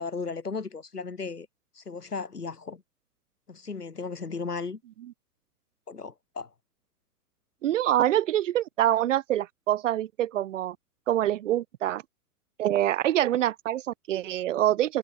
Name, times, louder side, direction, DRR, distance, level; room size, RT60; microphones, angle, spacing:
voice 1, 0.0-1.5 1.7-2.8 3.5-4.8 5.9-6.5, left 4 dB, 80° left, 4.8 m, -35 dB
voice 2, 7.6-10.8 11.1-12.0 12.6-15.0, right 12 dB, 55° right, 2.6 m, -25 dB
figure-of-eight pair, 105°, 46 cm